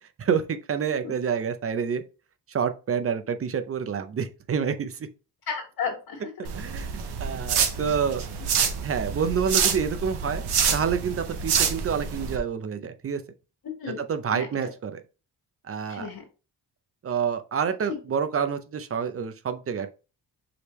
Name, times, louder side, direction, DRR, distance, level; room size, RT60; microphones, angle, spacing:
voice 1, 0.2-2.0 2.5-5.1 6.5-6.9 7.2-8.2 8.8-10.4 10.7-13.2 14.0-15.0 15.7-16.1 17.0-19.9, right 7 dB, 35° right, 0.5 m, -28 dB
voice 2, 5.5-6.3 13.6-14.0 14.3-14.7 15.9-16.2 17.9-18.0, left 6 dB, 65° left, 1.7 m, -33 dB
sound 1, 6.4-12.4, right 7 dB, 85° right, 0.8 m, -27 dB
4.9 x 3.3 x 3.1 m
cardioid pair, 115°, 38 cm